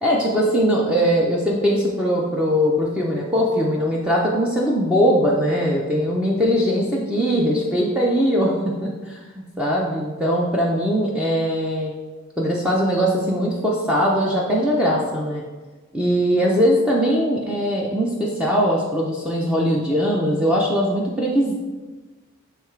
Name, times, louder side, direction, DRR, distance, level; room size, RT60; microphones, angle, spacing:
voice 1, 0.0-8.5 8.8-9.2 9.6-11.9 12.4-15.4 15.9-21.5, equal, 5° right, -4 dB, 0.6 m, -20 dB
6.9 x 3.3 x 4.5 m, 1.3 s
head